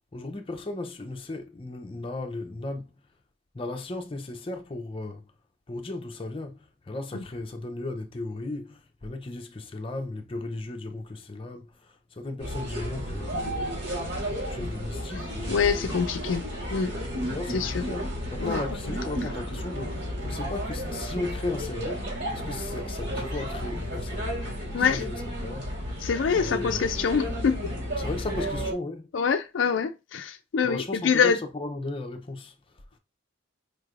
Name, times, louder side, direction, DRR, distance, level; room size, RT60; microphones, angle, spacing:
voice 1, 0.1-2.9 3.5-5.3 5.7-13.9 14.4-16.1 17.3-24.3 24.8-25.7 26.4-26.9 28.0-29.1 30.6-32.8, left 2 dB, 30° left, 0.6 m, -36 dB
sound 1, 12.4-28.7, equal, 60° right, 2.4 m, -32 dB
voice 2, 15.5-16.4 16.7-16.9 17.5-17.8 18.4-18.6 24.7-25.0 26.0-27.7 29.1-31.4, left 6 dB, 70° left, 0.4 m, -25 dB
5.0 x 3.2 x 2.4 m
head